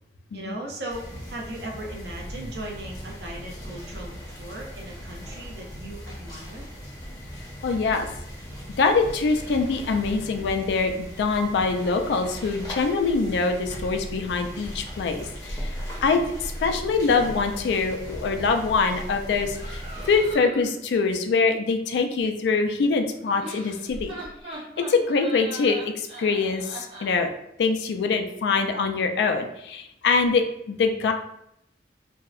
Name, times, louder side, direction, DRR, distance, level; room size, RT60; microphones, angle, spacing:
voice 1, 0.3-4.1 4.4-6.6, right 1 dB, 70° right, -1 dB, 0.6 m, -38 dB
sound 1, 0.9-20.4, equal, 20° left, 0.6 m, -38 dB
voice 2, 7.6-8.1 8.8-24.2 24.5-27.3 27.6-31.1, left 4 dB, 80° left, 5 dB, 0.3 m, -24 dB
sound 2, 19.5-20.8 23.1-27.2, right 2 dB, 30° right, 0.7 m, -40 dB
2.6 x 2.0 x 2.3 m, 0.79 s
head